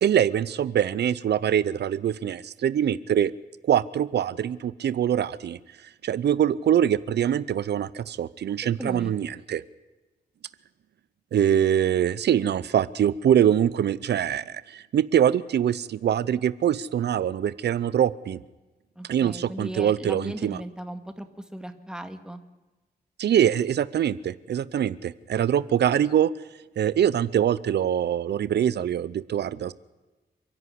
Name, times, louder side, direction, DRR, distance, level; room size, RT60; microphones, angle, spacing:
voice 1, 0.0-3.3 3.6-5.6 6.0-9.6 11.3-18.4 19.1-20.6 23.2-26.3 26.8-29.7, right 9 dB, 85° right, 18 dB, 0.6 m, -23 dB
voice 2, 8.8-9.1 19.0-21.3 21.5-22.4, right 1 dB, 5° right, 8 dB, 2.0 m, -37 dB
28.5 x 11.0 x 9.9 m, 1.1 s
wide cardioid pair, 100°, 17 cm